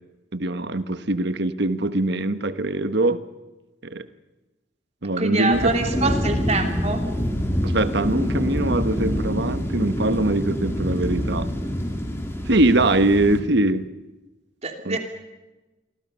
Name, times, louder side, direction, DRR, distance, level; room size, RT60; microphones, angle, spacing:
voice 1, 0.3-3.2 3.8-4.1 5.0-5.7 6.0-6.1 7.6-11.5 12.5-13.8 14.8-15.0, right 2 dB, 60° right, 11 dB, 1.2 m, -22 dB
voice 2, 5.2-7.0 14.6-15.0, right 3 dB, 35° right, 4 dB, 3.1 m, -24 dB
sound 1, 5.5-13.4, equal, 15° left, 3.5 m, -26 dB
29.0 x 23.0 x 5.6 m, 1.1 s
head